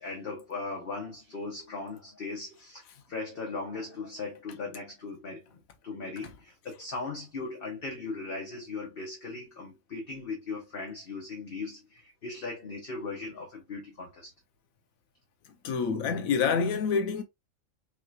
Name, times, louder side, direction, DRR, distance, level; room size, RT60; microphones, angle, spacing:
voice 1, 0.0-2.8 3.1-14.3, left 3 dB, 45° left, 1.2 m, -38 dB
voice 2, 15.6-17.2, left 5 dB, 90° left, 1.1 m, -27 dB
5.4 x 3.1 x 2.3 m
omnidirectional pair, 1.4 m